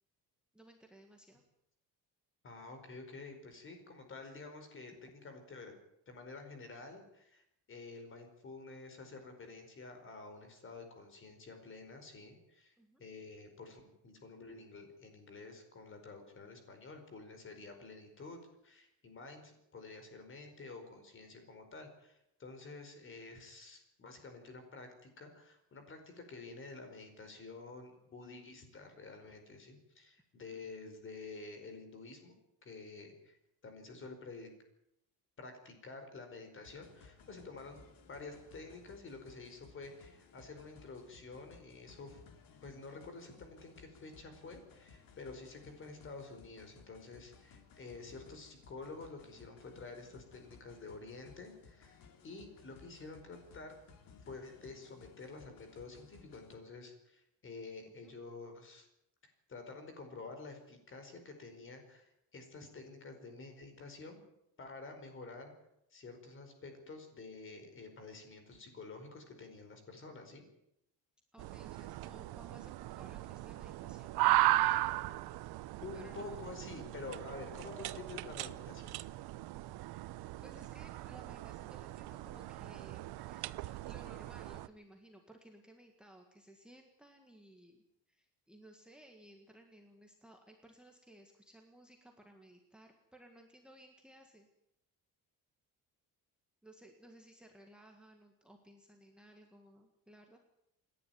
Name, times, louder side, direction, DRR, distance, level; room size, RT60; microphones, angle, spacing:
voice 1, 0.5-1.4 12.8-13.0 30.5-30.6 58.0-58.1 71.3-74.8 75.9-76.4 80.4-94.5 96.6-100.5, right 1 dB, ahead, 3 dB, 1.8 m, -59 dB
voice 2, 2.4-5.7 6.1-12.7 13.0-32.3 32.6-33.4 33.6-34.5 35.4-42.2 42.5-52.0 52.2-53.7 54.3-58.9 59.2-64.2 64.6-65.5 65.9-70.4 75.8-79.0, left 3 dB, 30° left, 6 dB, 4.9 m, -49 dB
sound 1, 36.6-56.6, left 5 dB, 60° left, 3.0 m, -60 dB
sound 2, 71.4-84.7, right 17 dB, 85° right, 0.8 m, -37 dB
28.5 x 11.0 x 9.4 m, 0.80 s
cardioid pair, 170°, 38 cm